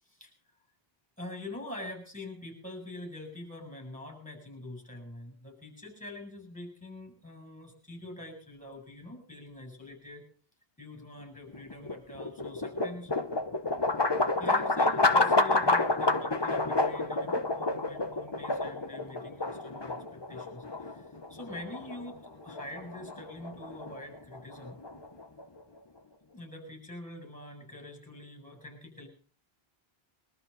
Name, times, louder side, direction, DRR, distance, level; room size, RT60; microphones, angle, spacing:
voice 1, 1.2-10.3 10.8-13.1 14.4-21.0 21.3-24.8 26.3-29.1, left 1 dB, 5° left, 3 dB, 7.7 m, -45 dB
sound 1, 11.5-25.6, left 2 dB, 25° left, 1.1 m, -29 dB
24.0 x 13.5 x 4.1 m, 0.40 s
omnidirectional pair, 1.0 m